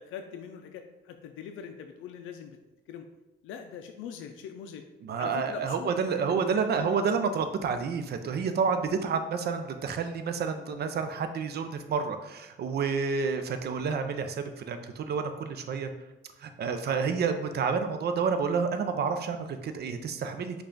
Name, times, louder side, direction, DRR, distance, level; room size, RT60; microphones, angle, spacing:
voice 1, 0.0-2.6 2.9-3.0 3.4-4.8 5.2-6.2 6.5-7.3, left 7 dB, 85° left, 5 dB, 0.4 m, -42 dB
voice 2, 5.0-15.9 16.4-20.6, right 5 dB, 55° right, 8 dB, 0.5 m, -29 dB
5.4 x 2.4 x 3.8 m, 1.0 s
cardioid pair, 90°, 20 cm